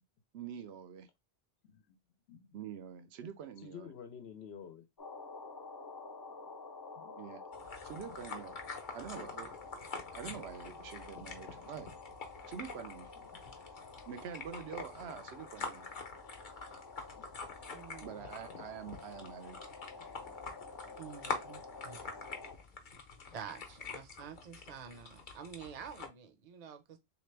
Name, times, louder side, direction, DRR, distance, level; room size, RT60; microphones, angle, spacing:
voice 1, 0.3-1.1 2.5-3.9 7.2-7.4 7.8-8.5 8.9-9.8 10.1-11.9 12.5-13.1 14.1-15.9 18.0-19.7 20.0-20.1, right 8 dB, 85° right, 0.8 m, -46 dB
voice 2, 1.6-2.0 2.3-2.6 3.6-4.8 7.0-7.2 11.6-11.7 13.4-13.6 17.1-17.3 20.1-20.3, left 7 dB, 80° left, 0.9 m, -51 dB
sound 1, 5.0-22.5, left 4 dB, 35° left, 0.3 m, -50 dB
sound 2, 7.5-26.1, left 4 dB, 50° left, 0.9 m, -46 dB
voice 3, 17.7-18.3 21.0-22.0 23.3-27.0, right 7 dB, 45° right, 0.6 m, -48 dB
3.2 x 2.9 x 3.2 m
omnidirectional pair, 1.1 m